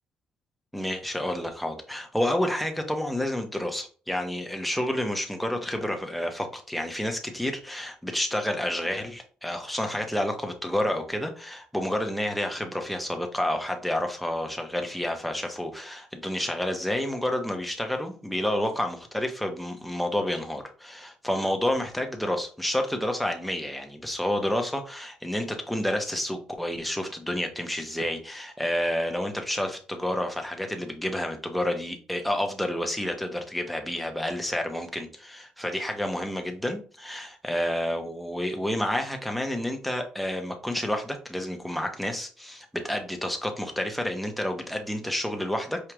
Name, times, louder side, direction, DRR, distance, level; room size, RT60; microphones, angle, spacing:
voice 1, 0.7-45.8, left 1 dB, ahead, 3 dB, 0.7 m, -29 dB
4.7 x 2.4 x 3.0 m, 0.40 s
cardioid pair, 115°, 2 cm